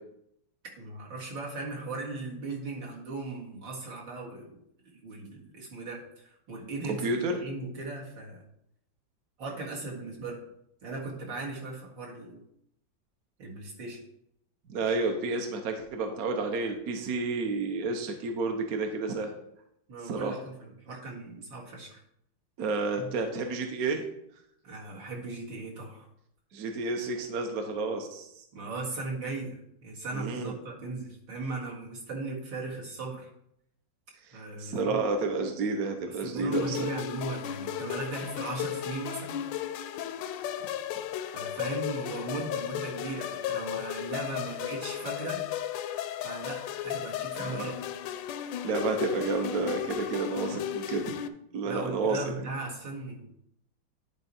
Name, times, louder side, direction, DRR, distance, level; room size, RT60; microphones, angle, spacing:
voice 1, 0.8-8.4 9.4-10.4 10.8-12.4 13.4-14.0 19.9-22.0 23.0-23.2 24.6-26.1 28.5-33.3 34.3-35.0 36.1-39.4 41.3-45.5 46.2-47.8 51.6-53.3, right 3 dB, 75° right, -3 dB, 2.6 m, -38 dB
voice 2, 6.9-7.4 14.7-19.3 20.0-20.4 22.6-24.0 26.5-28.3 30.1-30.6 34.3-36.9 47.4-47.6 48.6-51.1 51.5-52.2, right 3 dB, 55° right, 4 dB, 1.2 m, -30 dB
sound 1, 36.5-51.3, left 10 dB, 80° left, 1.2 m, -35 dB
10.5 x 4.5 x 4.2 m, 0.75 s
omnidirectional pair, 2.1 m